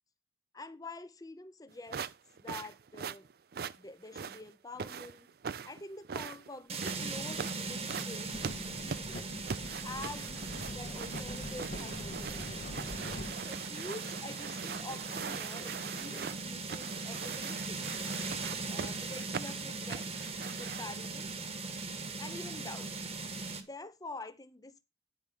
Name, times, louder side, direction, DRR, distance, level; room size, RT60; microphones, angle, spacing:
voice 1, 0.5-2.1 2.4-3.3 3.8-5.3 5.7-8.3 8.7-9.3 9.8-12.6 13.4-17.9 18.7-20.1 20.6-21.3 22.2-22.9 23.6-24.8, left 2 dB, 20° left, 0.6 m, -47 dB
sound 1, 1.9-21.1, right 6 dB, 55° right, 0.4 m, -42 dB
sound 2, 6.7-23.6, right 3 dB, 35° right, 1.2 m, -39 dB
sound 3, 8.3-13.3, left 1 dB, 45° left, 0.9 m, -44 dB
9.8 x 4.7 x 5.4 m
head